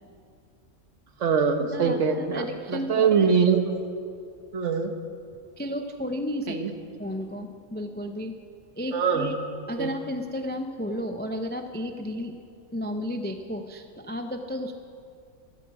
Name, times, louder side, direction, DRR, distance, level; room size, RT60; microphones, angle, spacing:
voice 1, 1.2-3.6 4.5-4.9 6.5-6.7 8.9-9.4 9.8-9.9, right 6 dB, 65° right, 7 dB, 1.3 m, -23 dB
voice 2, 1.7-3.3 5.6-6.6 7.0-8.4 8.8-9.4 9.7-12.4 12.7-14.7, equal, 15° left, 6 dB, 0.3 m, -33 dB
14.0 x 8.3 x 8.2 m, 2.3 s
omnidirectional pair, 1.4 m